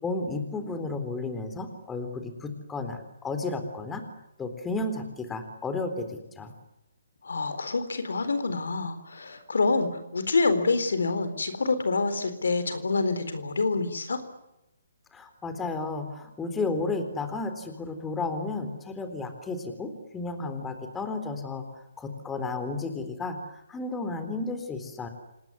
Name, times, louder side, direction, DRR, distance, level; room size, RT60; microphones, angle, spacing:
voice 1, 0.0-4.0 4.4-6.5 15.1-25.1, left 3 dB, 10° left, 7 dB, 3.7 m, -33 dB
voice 2, 7.2-14.2, left 3 dB, 80° left, 11 dB, 4.0 m, -27 dB
27.5 x 19.5 x 9.7 m, 0.91 s
hypercardioid pair, 150°, 0 cm